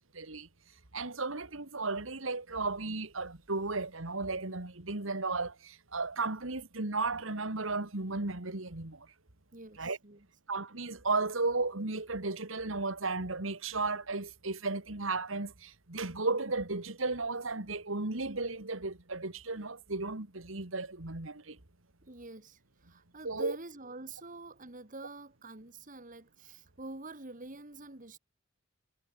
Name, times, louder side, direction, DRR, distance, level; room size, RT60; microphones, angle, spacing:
voice 1, 0.1-0.5 0.9-9.0 9.8-10.0 10.5-21.6 23.2-23.6, right 3 dB, 80° right, 2.4 m, -34 dB
voice 2, 9.5-10.3 22.0-28.2, right 2 dB, 40° right, 2.4 m, -47 dB
head